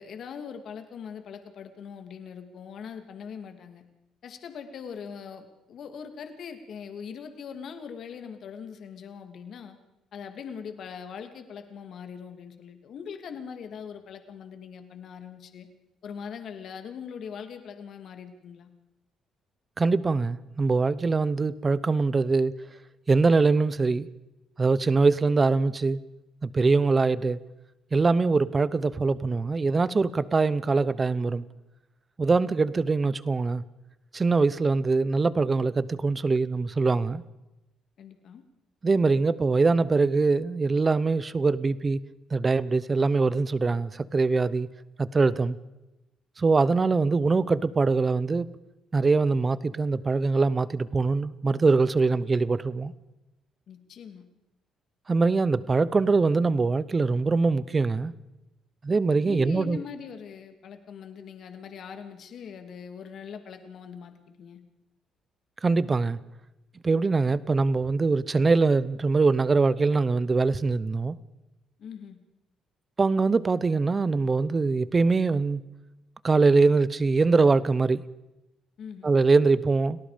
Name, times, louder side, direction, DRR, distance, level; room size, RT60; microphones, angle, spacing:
voice 1, 0.0-3.8 4.2-9.8 10.1-15.7 16.0-18.7 38.0-38.4 53.7-54.2 59.2-64.6 71.8-72.2 78.8-79.1, left 6 dB, 55° left, 2.6 m, -41 dB
voice 2, 19.8-22.5 23.1-24.1 24.6-26.0 26.4-27.4 27.9-31.4 32.2-33.6 34.1-37.2 38.8-42.0 42.3-44.7 45.0-45.6 46.4-48.5 48.9-52.9 55.1-58.1 58.8-59.8 65.6-66.2 66.8-71.2 73.0-75.6 76.2-78.0 79.0-80.0, right 4 dB, 25° right, 0.8 m, -23 dB
29.5 x 18.5 x 5.2 m
cardioid pair, 140°, 0 cm